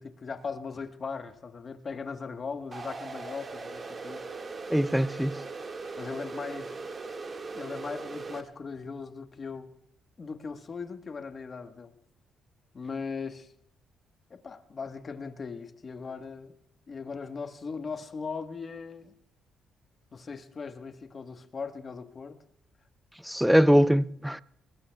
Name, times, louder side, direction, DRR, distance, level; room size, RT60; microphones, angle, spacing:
voice 1, 0.0-4.3 6.0-6.8 7.5-9.7 10.2-11.9 12.7-13.5 14.3-16.6 16.9-19.1 20.1-22.4, left 5 dB, 40° left, 1.2 m, -39 dB
sound 1, 2.7-8.4, right 4 dB, 35° right, 1.8 m, -39 dB
voice 2, 4.7-5.4 23.2-24.4, equal, 5° right, 0.5 m, -22 dB
23.0 x 20.0 x 2.3 m
cardioid pair, 90°, 0 cm